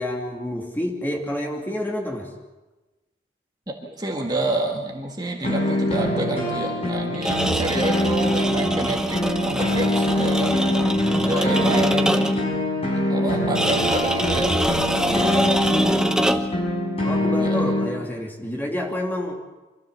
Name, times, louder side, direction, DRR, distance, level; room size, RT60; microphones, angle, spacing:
voice 1, 0.0-2.3 11.1-12.0 15.1-15.4 17.0-19.3, left 1 dB, 10° left, 0 dB, 2.9 m, -29 dB
voice 2, 3.7-10.6 11.2-12.5 13.1-14.6 17.4-17.6, right 2 dB, 25° right, 1 dB, 1.7 m, -28 dB
sound 1, 5.4-17.9, left 1 dB, 35° left, 6.4 m, -24 dB
sound 2, 7.1-12.5 13.6-16.6, equal, 5° right, 1.0 m, -24 dB
25.0 x 14.5 x 7.1 m, 1.1 s
head